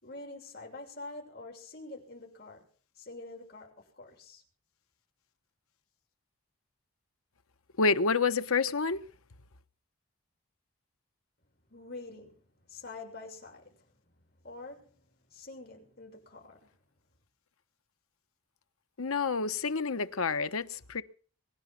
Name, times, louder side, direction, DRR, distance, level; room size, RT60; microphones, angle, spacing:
voice 1, 0.0-2.7 2.9-4.4 11.7-13.9 14.4-16.7, left 2 dB, 45° left, 6.6 m, -46 dB
voice 2, 7.8-9.0 19.0-21.0, left 4 dB, 75° left, 1.0 m, -28 dB
23.5 x 10.5 x 6.0 m
head